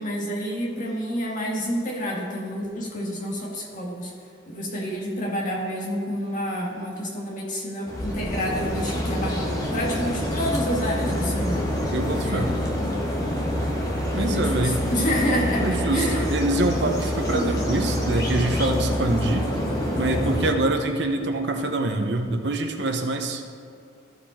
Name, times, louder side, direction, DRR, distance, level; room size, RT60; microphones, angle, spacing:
voice 1, 0.0-4.1 4.5-11.7 12.2-12.5 12.7-13.3 14.1-16.2 17.2-17.6, equal, 45° left, -3 dB, 1.9 m, -29 dB
sound 1, 7.9-20.5, equal, 20° left, 1.3 m, -26 dB
voice 2, 11.9-12.5 14.1-14.8 15.6-19.5 20.0-23.4, right 2 dB, 60° right, 5 dB, 0.8 m, -25 dB
14.5 x 5.0 x 4.3 m, 2.3 s
head